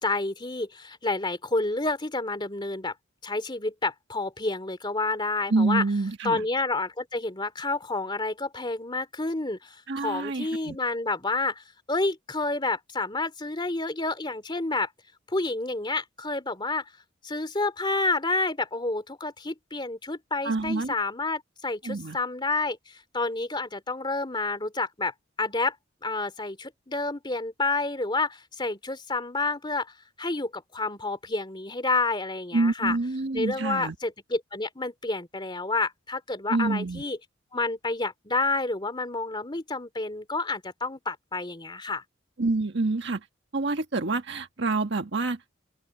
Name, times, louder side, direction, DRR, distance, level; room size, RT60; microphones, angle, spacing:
voice 1, 0.0-2.9 3.2-5.8 6.2-14.9 15.3-16.8 17.2-25.7 26.0-29.9 30.2-33.0 33.3-37.2 37.5-42.0, left 3 dB, 25° left, 3.0 m, -29 dB
voice 2, 5.5-6.4 9.9-10.8 20.4-20.9 21.8-22.2 32.5-33.9 36.5-37.0 42.4-43.2 43.5-45.4, right 3 dB, 60° right, 1.4 m, -27 dB
open air
head